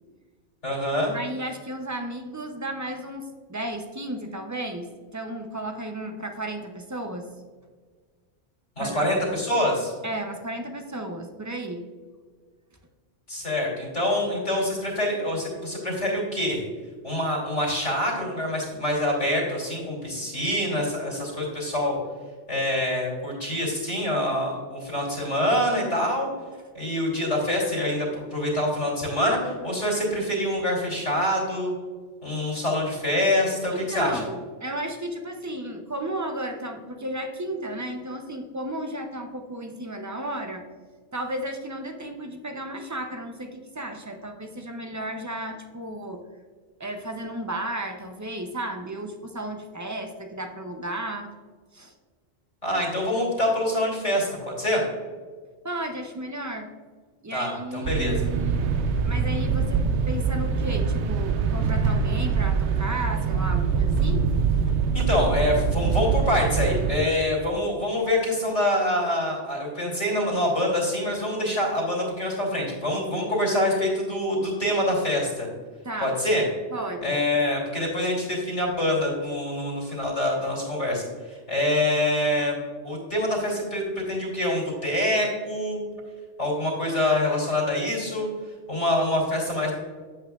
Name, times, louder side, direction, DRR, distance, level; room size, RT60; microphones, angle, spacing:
voice 1, 0.6-1.1 8.8-9.9 13.3-16.6 17.0-22.0 22.5-26.3 26.7-31.7 32.2-34.2 52.6-54.8 57.3-58.2 64.9-75.5 76.0-76.4 77.0-81.0 81.3-82.5 82.8-83.8 84.1-85.8 86.4-88.3 88.7-89.7, left 1 dB, 80° left, -2 dB, 2.8 m, -25 dB
voice 2, 1.1-7.3 8.8-9.1 10.0-11.9 33.7-40.6 41.1-46.2 46.8-51.3 51.7-51.9 55.6-56.7 57.2-58.7 59.0-64.3 75.8-76.2 76.7-77.2, right 1 dB, 30° right, 5 dB, 0.3 m, -33 dB
sound 1, 57.8-67.0, right 5 dB, 75° right, 0.8 m, -24 dB
8.2 x 8.0 x 2.3 m, 1.5 s
omnidirectional pair, 1.2 m